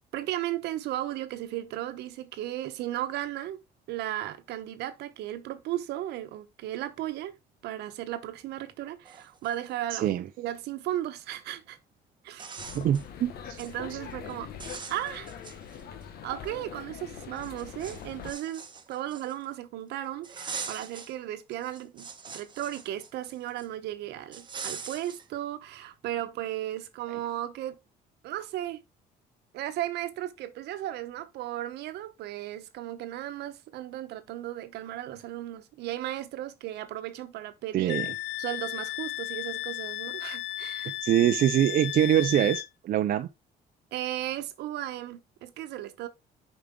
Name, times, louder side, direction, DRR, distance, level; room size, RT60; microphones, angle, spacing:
voice 1, 0.1-3.6 3.9-7.4 7.6-11.8 12.2-12.6 13.6-14.5 14.9-15.3 16.2-18.6 18.9-27.8 28.2-28.8 29.5-38.0 38.4-40.9 43.9-46.1, right 13 dB, 80° right, 1.1 m, -35 dB
sound 1, 8.7-8.8 9.0-10.2 11.7-11.8 12.3-13.1 13.4-13.7 14.1-14.3 14.6-16.0 16.5-16.6 17.4-19.5 20.2-21.1 21.5-23.7 24.3-25.3, right 5 dB, 25° right, 1.1 m, -42 dB
voice 2, 9.9-10.3 12.7-13.6 13.9-14.0 37.7-38.1 41.0-43.3, right 11 dB, 55° right, 0.5 m, -24 dB
sound 2, 12.6-18.3, left 8 dB, 70° left, 1.3 m, -43 dB
Wind instrument woodwind instrument, 37.9-42.7, left 17 dB, 90° left, 0.4 m, -35 dB
6.8 x 5.1 x 3.7 m
cardioid pair, 110°, 17 cm